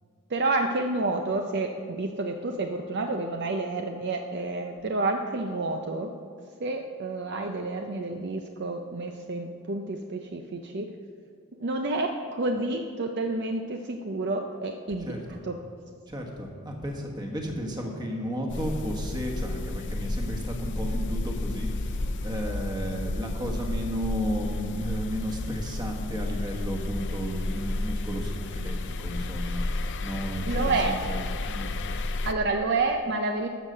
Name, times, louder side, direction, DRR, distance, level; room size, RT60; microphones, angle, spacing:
voice 1, 0.3-6.1 6.6-10.9 11.6-15.2 15.4-15.6 30.5-31.0 32.2-33.5, right 2 dB, 50° right, 4 dB, 0.6 m, -29 dB
voice 2, 15.0-15.4 16.1-31.7, equal, 20° right, 1 dB, 1.4 m, -33 dB
sound 1, 18.5-32.3, left 2 dB, 55° left, 0.5 m, -32 dB
13.0 x 6.4 x 6.7 m, 2.2 s
head